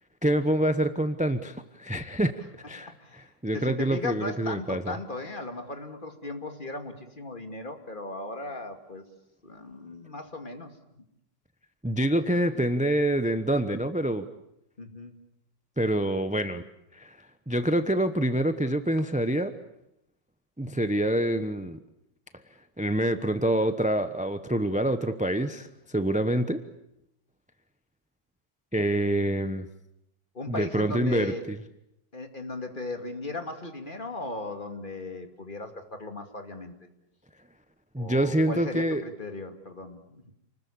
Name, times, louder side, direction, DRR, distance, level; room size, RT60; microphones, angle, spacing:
voice 1, 0.2-2.3 2.7-4.9 11.8-14.3 15.8-16.6 16.9-17.2 17.5-19.5 20.6-21.8 22.8-26.6 28.7-29.7 30.5-31.6 37.9-39.0, right 1 dB, 5° right, 10 dB, 0.6 m, -26 dB
voice 2, 3.5-9.0 9.4-10.7 14.8-15.1 30.3-31.5 32.1-36.7 38.0-40.3, left 2 dB, 25° left, 6 dB, 2.4 m, -37 dB
29.0 x 20.5 x 8.6 m, 0.83 s
omnidirectional pair, 2.0 m